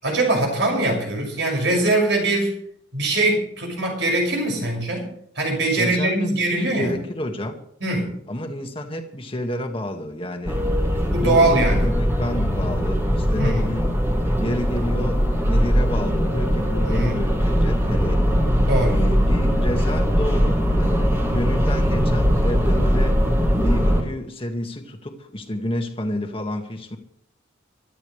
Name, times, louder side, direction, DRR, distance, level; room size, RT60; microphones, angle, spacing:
voice 1, 0.0-2.5 2.9-5.1 5.3-7.0 7.8-8.2 11.1-11.9 13.4-13.7 16.8-17.2 18.7-19.0, right 2 dB, 70° right, 1 dB, 6.2 m, -22 dB
voice 2, 5.8-7.6 8.3-10.6 11.2-13.9 14.4-18.2 18.9-23.2 23.6-27.0, left 1 dB, 30° left, 4 dB, 1.8 m, -29 dB
sound 1, 10.5-24.0, equal, 15° right, 2.2 m, -20 dB
24.0 x 13.0 x 3.3 m, 0.68 s
head